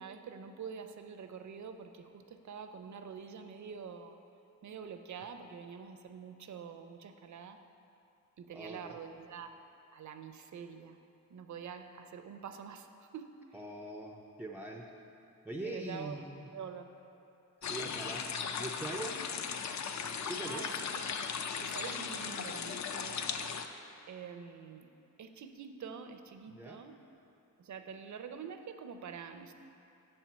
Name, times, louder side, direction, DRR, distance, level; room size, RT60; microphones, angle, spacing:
voice 1, 0.0-4.2 4.6-7.6 8.4-9.5 9.9-11.0 11.3-13.4 15.6-16.9 20.4-21.2 21.6-23.3 24.0-24.9 25.2-27.0 27.6-29.5, right 6 dB, 60° right, 7 dB, 0.5 m, -46 dB
voice 2, 8.5-8.9 13.5-14.8 15.4-16.5 17.6-18.3 18.6-19.2 20.3-20.6 26.5-26.8, right 1 dB, 5° right, 1 dB, 0.3 m, -42 dB
sound 1, 17.6-23.7, left 6 dB, 60° left, 0.4 m, -37 dB
7.9 x 4.4 x 7.0 m, 2.8 s
wide cardioid pair, 175°, 33 cm